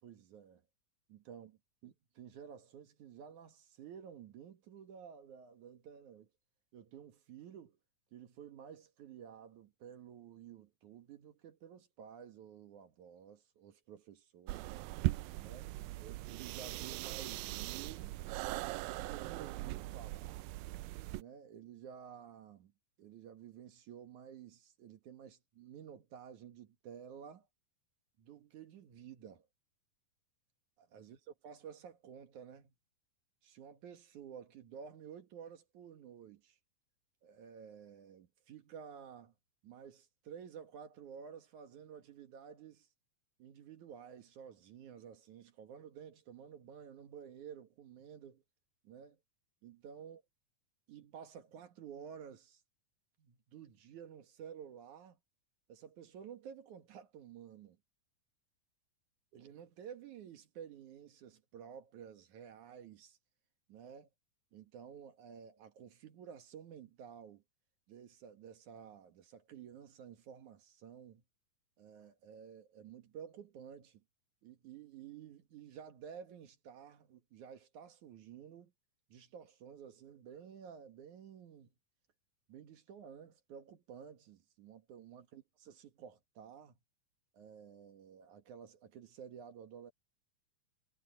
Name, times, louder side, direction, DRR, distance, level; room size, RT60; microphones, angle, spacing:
voice 1, 0.0-0.6 1.1-1.6 1.8-6.3 6.7-7.8 8.1-14.8 15.4-15.7 16.0-18.3 18.8-20.5 21.1-22.7 23.0-27.5 28.2-29.5 30.8-32.7 33.4-36.6 37.2-39.3 39.6-42.9 43.4-48.4 48.8-49.2 49.6-50.2 50.9-52.6 53.2-55.2 55.7-57.8 59.3-63.2 63.7-64.1 64.5-67.4 67.9-71.2 71.8-74.0 74.4-78.7 79.1-81.7 82.5-86.8 87.3-89.9, right 8 dB, 65° right, 2.9 m, -52 dB
sound 1, 14.5-21.2, right 18 dB, 90° right, 2.3 m, -40 dB
omnidirectional pair, 4.0 m